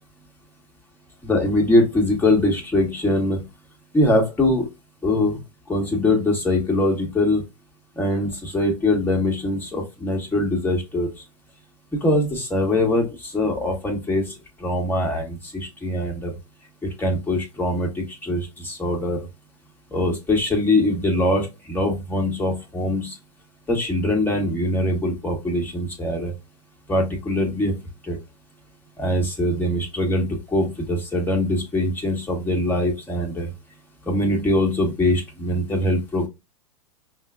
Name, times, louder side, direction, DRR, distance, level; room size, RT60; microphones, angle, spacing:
voice 1, 1.2-3.5 3.9-4.7 5.0-5.4 5.7-7.4 7.9-11.1 11.9-16.3 16.8-19.3 19.9-23.2 23.7-26.3 26.9-28.2 29.0-33.5 34.0-36.3, left 1 dB, 10° left, 0 dB, 1.6 m, -22 dB
5.4 x 2.2 x 2.4 m, 0.23 s
hypercardioid pair, 110°, 19 cm